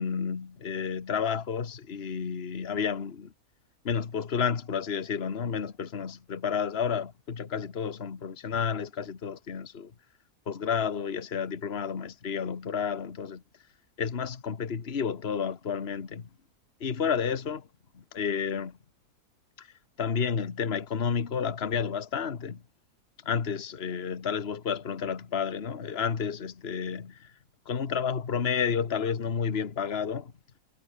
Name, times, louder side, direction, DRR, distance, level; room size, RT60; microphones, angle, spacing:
voice 1, 0.0-3.3 3.8-9.9 10.5-13.4 14.0-16.3 16.8-17.7 17.9-18.7 19.6-19.7 20.0-22.6 23.2-27.3 27.6-30.3, left 6 dB, 40° left, 1.7 m, -31 dB
omnidirectional pair, 1.6 m